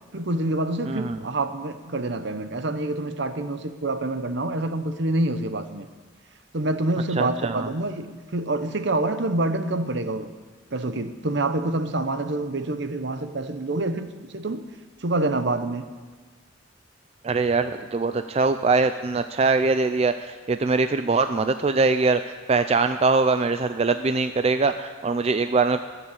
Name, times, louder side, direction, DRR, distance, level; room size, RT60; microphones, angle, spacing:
voice 1, 0.1-5.9 6.5-10.3 10.7-14.7 15.0-15.9, right 2 dB, 60° right, 10 dB, 0.9 m, -27 dB
voice 2, 0.9-1.2 7.2-7.7 17.2-25.8, right 3 dB, 30° right, 10 dB, 0.4 m, -22 dB
20.5 x 7.0 x 8.5 m, 1.4 s
head